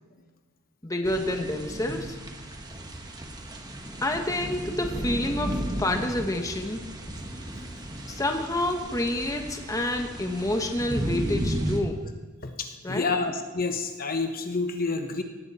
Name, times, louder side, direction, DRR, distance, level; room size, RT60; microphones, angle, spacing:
voice 1, 0.8-2.2 4.0-6.8 8.1-12.1 12.8-13.1, left 1 dB, 15° left, 4 dB, 1.1 m, -28 dB
sound 1, 1.0-11.8, right 1 dB, 20° right, 1.5 m, -34 dB
voice 2, 12.4-15.2, left 3 dB, 45° left, 6 dB, 1.0 m, -29 dB
18.0 x 15.5 x 4.2 m, 1.3 s
head